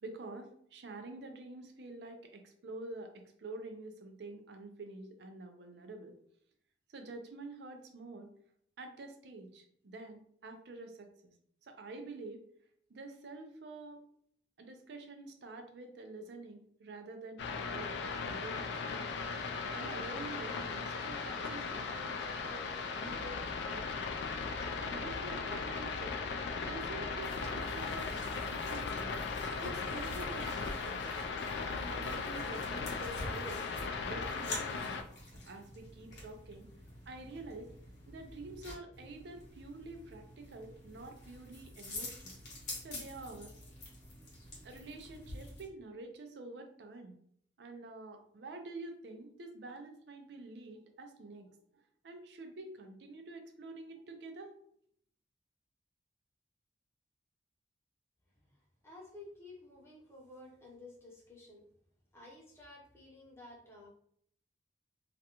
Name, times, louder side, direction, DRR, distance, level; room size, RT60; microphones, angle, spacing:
voice 1, 0.0-6.2 6.9-8.3 8.8-11.3 11.6-12.4 12.9-14.0 14.6-18.9 19.7-24.1 24.6-29.1 29.6-31.1 31.6-33.6 34.0-35.1 35.5-36.7 37.1-37.7 38.1-42.3 42.8-43.5 44.6-47.2 47.6-54.5, right 2 dB, 70° right, 5 dB, 0.4 m, -48 dB
sound 1, 17.4-35.0, left 4 dB, 75° left, 0.3 m, -38 dB
sound 2, 27.2-45.7, left 2 dB, 45° left, 0.9 m, -48 dB
voice 2, 58.8-61.6 62.1-63.9, left 2 dB, 15° left, -3 dB, 0.6 m, -53 dB
2.4 x 2.1 x 2.8 m, 0.65 s
head